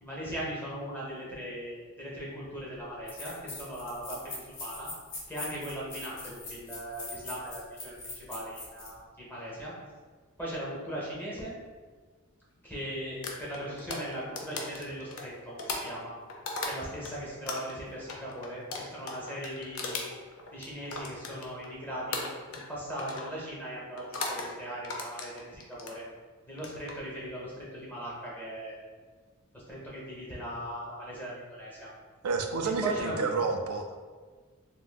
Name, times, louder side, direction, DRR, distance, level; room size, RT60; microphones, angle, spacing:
voice 1, 0.0-4.9 5.3-9.7 10.4-11.5 12.6-16.2 16.7-20.0 20.5-26.0 26.4-28.8 29.5-31.9 32.8-33.3, right 1 dB, 10° left, -6 dB, 0.8 m, -39 dB
sound 1, 2.5-2.6 3.1-8.9, left 2 dB, 55° left, 0.9 m, -42 dB
sound 2, 13.2-17.1 17.5-21.7 22.1-22.7 23.0-23.3 24.0-24.5 24.8-26.0 26.5-26.9, left 3 dB, 70° left, 0.5 m, -37 dB
voice 2, 32.2-34.0, right 4 dB, 90° right, 5 dB, 0.4 m, -30 dB
3.6 x 2.5 x 2.2 m, 1.5 s
head